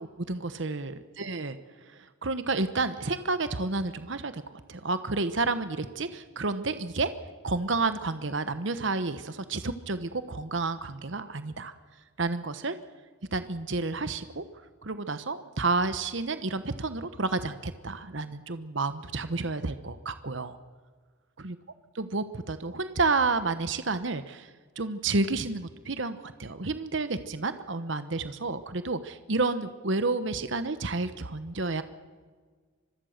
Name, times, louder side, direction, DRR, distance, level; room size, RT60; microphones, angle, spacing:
voice 1, 0.0-1.6 1.9-4.4 4.7-7.1 7.4-11.7 12.2-12.8 13.3-14.4 14.8-20.6 21.4-21.6 21.9-24.5 24.8-31.8, right 3 dB, 60° right, 11 dB, 1.1 m, -30 dB
25.5 x 22.0 x 6.6 m, 1.5 s
head